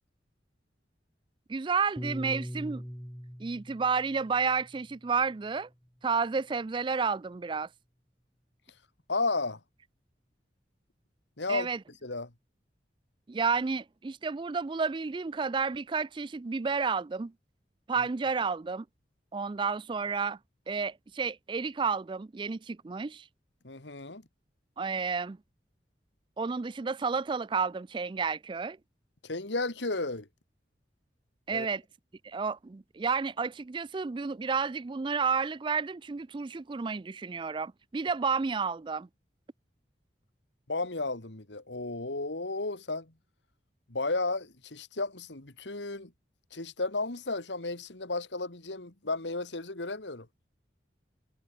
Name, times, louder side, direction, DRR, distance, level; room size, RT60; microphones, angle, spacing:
voice 1, 1.5-2.8 3.4-5.7 6.0-7.7 11.5-11.8 13.3-17.3 17.9-18.9 19.3-20.4 20.7-23.3 24.8-25.4 26.4-28.8 31.5-31.8 32.2-39.1, right 5 dB, 25° right, 0.4 m, -31 dB
Piano, 2.0-6.4, equal, 5° left, 2.7 m, -43 dB
voice 2, 9.1-9.6 11.4-11.7 12.0-12.3 18.0-18.1 23.6-24.2 29.2-30.3 31.5-31.7 40.7-43.1 43.9-46.1 46.5-50.3, left 3 dB, 85° left, 2.5 m, -33 dB
head